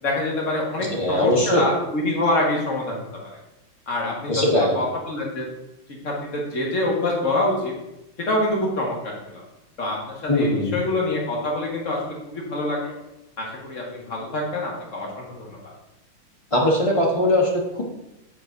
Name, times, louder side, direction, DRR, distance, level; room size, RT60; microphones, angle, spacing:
voice 1, 0.0-3.1 3.9-5.5 6.0-7.7 8.2-9.4 9.8-13.0 13.4-15.7, left 2 dB, 40° left, -2 dB, 1.7 m, -26 dB
voice 2, 0.9-1.6 4.3-4.8 10.3-10.8 16.5-17.8, left 1 dB, 25° left, -1 dB, 0.8 m, -20 dB
7.8 x 6.8 x 2.6 m, 0.91 s
omnidirectional pair, 2.1 m